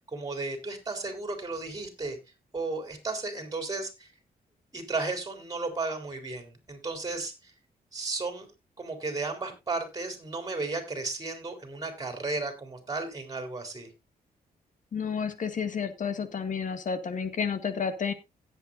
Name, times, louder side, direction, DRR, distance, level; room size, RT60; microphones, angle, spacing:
voice 1, 0.0-2.2 2.5-4.1 4.7-7.5 7.9-8.5 8.8-13.9, right 3 dB, 25° right, 6 dB, 4.3 m, -34 dB
voice 2, 14.9-18.1, left 6 dB, 55° left, 9 dB, 2.0 m, -31 dB
17.0 x 8.3 x 2.6 m, 0.23 s
cardioid pair, 85°, 16 cm